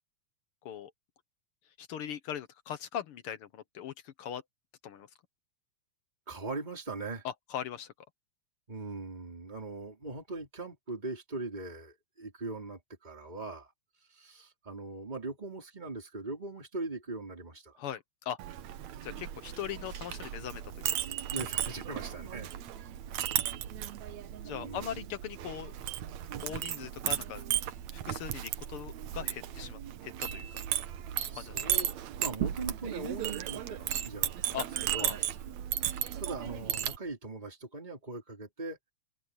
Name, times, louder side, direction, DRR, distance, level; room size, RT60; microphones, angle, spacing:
voice 1, 1.8-4.4 4.8-5.1 7.2-7.9 17.8-18.4 19.0-20.9 24.4-25.7 26.4-30.5 31.3-31.6 34.5-34.6 35.0-35.2, left 9 dB, 65° left, 1.4 m, -40 dB
voice 2, 6.3-7.2 8.7-13.7 14.1-17.8 21.3-22.5 24.6-25.1 31.3-34.6 34.9-35.2 36.2-38.8, right 3 dB, 15° right, 4.1 m, -40 dB
Chink clink, 18.4-37.0, right 11 dB, 70° right, 2.3 m, -35 dB
omnidirectional pair, 3.6 m